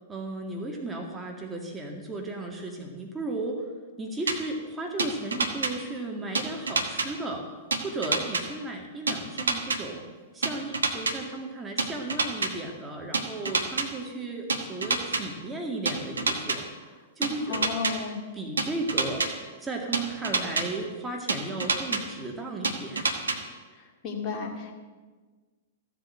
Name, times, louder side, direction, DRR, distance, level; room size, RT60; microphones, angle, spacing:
voice 1, 0.1-3.7 4.0-7.5 7.8-10.1 10.3-16.7 17.2-17.9 18.3-19.3 19.6-23.2, right 2 dB, 15° right, 1 dB, 2.0 m, -35 dB
sound 1, 4.3-4.4 5.0-5.7 6.3-7.1 7.7-8.4 9.1-9.8 10.4-11.1 11.8-12.5 13.1-13.9 14.5-15.2 15.9-16.6 17.2-17.9 18.6-19.3 19.9-20.6 21.3-22.0 22.6-23.4, right 4 dB, 75° right, 1.4 m, -26 dB
voice 2, 17.4-18.2 23.7-24.8, left 5 dB, 30° left, -1 dB, 2.4 m, -33 dB
14.5 x 7.9 x 7.7 m, 1.4 s
figure-of-eight pair, 105°, 0 cm